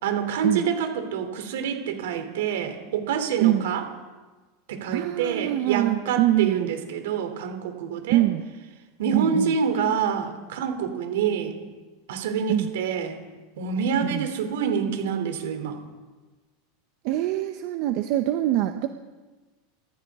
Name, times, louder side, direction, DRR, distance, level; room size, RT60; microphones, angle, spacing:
voice 1, 0.0-3.8 4.7-8.2 9.0-11.6 12.1-13.2 13.6-15.8, right 7 dB, 80° right, 6 dB, 3.2 m, -27 dB
voice 2, 3.4-3.7 4.9-6.7 8.1-8.5 9.1-9.5 12.5-12.7 14.1-14.3 17.0-18.9, right 14 dB, 60° right, 8 dB, 0.9 m, -24 dB
26.0 x 14.5 x 3.7 m, 1.3 s
supercardioid pair, 130°, 0 cm